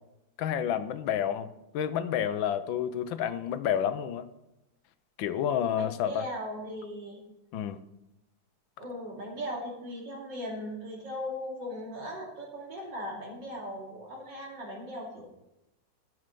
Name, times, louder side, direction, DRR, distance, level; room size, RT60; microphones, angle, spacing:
voice 1, 0.4-1.5 1.7-4.3 5.2-6.2 7.5-7.8, left 9 dB, 85° left, 13 dB, 1.5 m, -29 dB
voice 2, 5.7-7.2 8.8-15.2, equal, 65° right, -2 dB, 3.4 m, -38 dB
12.0 x 8.1 x 5.3 m, 0.91 s
omnidirectional pair, 2.1 m